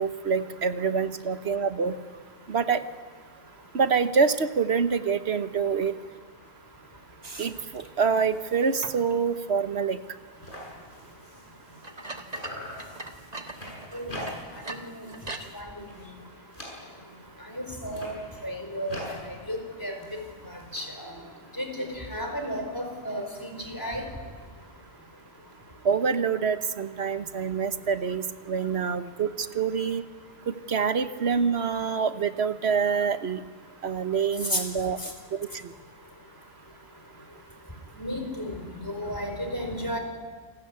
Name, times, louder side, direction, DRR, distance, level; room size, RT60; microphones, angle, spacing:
voice 1, 0.0-1.9 2.5-2.8 3.7-5.9 7.4-10.0 25.8-29.3 29.5-30.0 30.5-33.4 33.8-35.0, right 6 dB, 65° right, 11 dB, 1.4 m, -26 dB
sound 1, 7.2-9.2 9.6-9.8 10.8-10.9 11.8-15.6, right 2 dB, 35° right, 1.8 m, -41 dB
sound 2, 9.2-9.4 9.8-9.9 10.1-12.1 12.3-14.7 15.0-15.4 15.7-17.2 17.8-20.8, left 1 dB, 45° left, 7.5 m, -43 dB
voice 2, 14.7-15.0 15.5-15.6 17.5-18.1 18.4-19.0 19.3-19.9 20.7-21.1 21.6-24.0 34.5-34.6 38.0-38.5 38.8-40.0, equal, 15° left, 3 dB, 4.8 m, -33 dB
29.0 x 21.0 x 9.5 m, 1.5 s
omnidirectional pair, 1.2 m